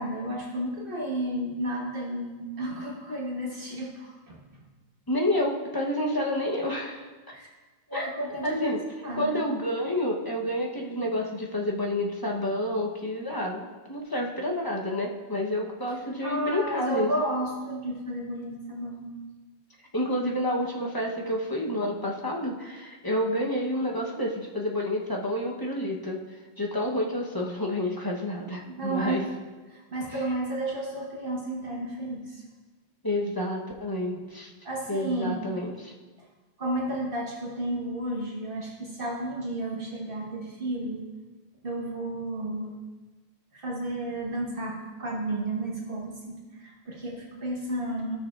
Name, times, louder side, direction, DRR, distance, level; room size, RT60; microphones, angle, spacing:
voice 1, 0.0-4.6 7.3-7.5 7.9-8.7 9.0-9.3 16.2-19.1 28.7-29.2 29.7-32.4 34.6-35.4 36.6-41.1 41.6-42.7 43.5-48.2, right 1 dB, 55° right, -3 dB, 1.5 m, -32 dB
voice 2, 5.1-7.4 7.9-8.8 9.2-17.1 19.9-26.2 26.6-29.2 33.0-34.5 34.9-35.9, left 1 dB, 20° left, -2 dB, 0.9 m, -29 dB
16.0 x 6.4 x 2.4 m, 1.3 s
omnidirectional pair, 1.1 m